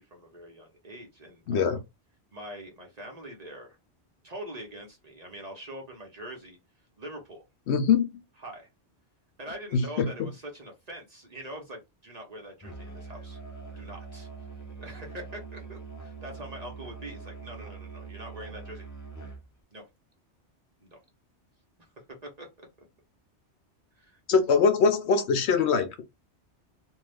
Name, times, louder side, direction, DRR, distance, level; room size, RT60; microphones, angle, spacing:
voice 1, 0.0-1.8 2.3-3.8 4.2-6.6 7.0-7.4 8.4-8.7 9.4-13.4 13.8-14.3 14.8-18.9 19.7-19.9 20.8-21.0 21.8-21.9 22.2-22.5 24.0-24.2, right 1 dB, 40° right, 0.9 m, -43 dB
voice 2, 1.5-1.8 7.7-8.0 9.7-10.3 24.3-26.0, left 5 dB, 70° left, 0.9 m, -23 dB
Musical instrument, 12.6-19.5, right 5 dB, 20° left, 0.5 m, -43 dB
2.6 x 2.4 x 3.4 m
omnidirectional pair, 1.2 m